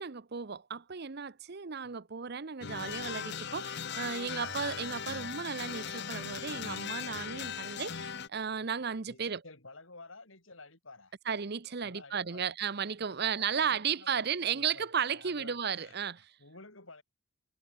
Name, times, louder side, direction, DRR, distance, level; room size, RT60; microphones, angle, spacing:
voice 1, 0.0-9.4 11.3-16.3, right 7 dB, 50° right, 0.7 m, -34 dB
sound 1, 2.6-8.3, left 7 dB, 55° left, 1.1 m, -39 dB
voice 2, 9.1-11.1 11.8-12.5 13.0-14.8 15.1-16.0 16.4-17.0, left 3 dB, 70° left, 6.9 m, -53 dB
head